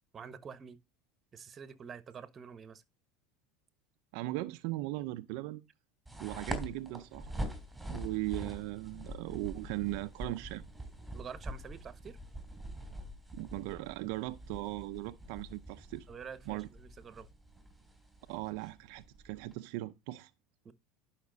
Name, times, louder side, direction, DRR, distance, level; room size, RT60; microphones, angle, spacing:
voice 1, 0.1-0.8 1.3-2.8 11.1-12.2 16.1-17.3 20.6-20.7, right 6 dB, 30° right, 1.3 m, -47 dB
voice 2, 4.1-5.6 6.2-7.3 7.9-10.6 13.3-16.1 16.5-16.7 18.3-20.3, right 18 dB, 70° right, 0.6 m, -38 dB
sound 1, 6.1-19.5, right 1 dB, 5° right, 3.4 m, -44 dB
11.5 x 5.9 x 4.0 m
supercardioid pair, 100°, 0 cm